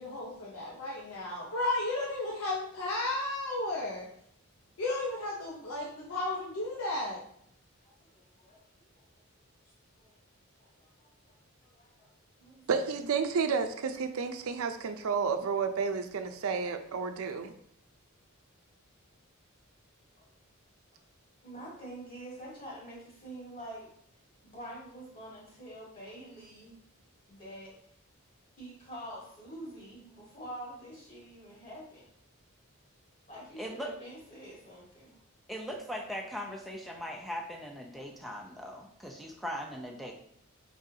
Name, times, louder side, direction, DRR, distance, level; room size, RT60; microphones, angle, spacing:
voice 1, 0.0-4.1 4.8-7.2, left 2 dB, 90° left, -4 dB, 0.8 m, -33 dB
voice 2, 7.8-8.6 8.9-9.0 9.6-9.7 10.0-10.1 10.6-12.1 12.4-12.6 20.2-20.3 21.4-23.9 24.4-26.7 27.3-27.7 28.6-32.1 33.3-35.2, right 1 dB, 40° left, -5 dB, 1.7 m, -46 dB
voice 3, 12.7-17.5, right 5 dB, 90° right, 7 dB, 0.5 m, -31 dB
voice 4, 33.6-33.9 35.5-40.1, equal, ahead, 0 dB, 0.6 m, -39 dB
4.9 x 3.8 x 2.7 m, 0.69 s
head